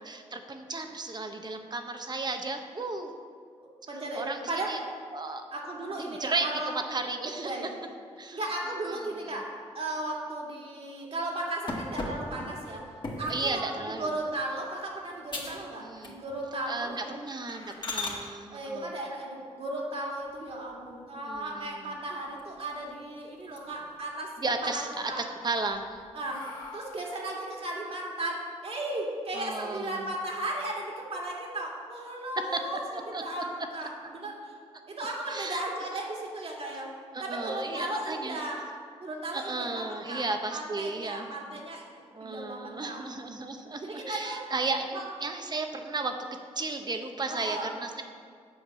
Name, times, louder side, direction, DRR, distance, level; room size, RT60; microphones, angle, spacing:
voice 1, 0.0-3.1 4.1-4.8 5.1-5.4 6.0-7.5 8.2-8.4 9.2-9.3 13.3-14.1 15.8-16.2 16.7-18.9 21.3-21.9 24.4-26.0 29.3-30.1 32.5-32.6 32.9-33.4 33.8-33.9 35.3-35.6 37.1-38.4 39.3-41.6 42.1-46.1 46.5-48.0, right 3 dB, 35° right, 5 dB, 1.0 m, -34 dB
voice 2, 3.6-4.7 5.5-6.7 7.4-7.7 8.3-9.5 9.7-12.9 13.2-17.1 18.1-18.2 18.5-24.3 24.6-25.2 26.1-26.4 26.7-34.5 34.9-36.9 37.2-38.6 39.0-40.2 40.5-41.8 42.2-43.0 43.8-44.4 44.9-45.0 47.3-47.7, right 1 dB, 50° right, -2 dB, 2.3 m, -35 dB
sound 1, 11.7-13.5 14.0-14.3 14.8-14.9 15.3-15.7 16.0-16.5 16.8-17.0 17.5-18.2 20.2-20.9 21.3-21.4 21.8-21.9 22.2-23.0 23.4-24.0 24.4-25.0 25.5-27.3, left 2 dB, 40° left, 1.9 m, -39 dB
7.9 x 5.2 x 7.4 m, 2.1 s
supercardioid pair, 55°, 12 cm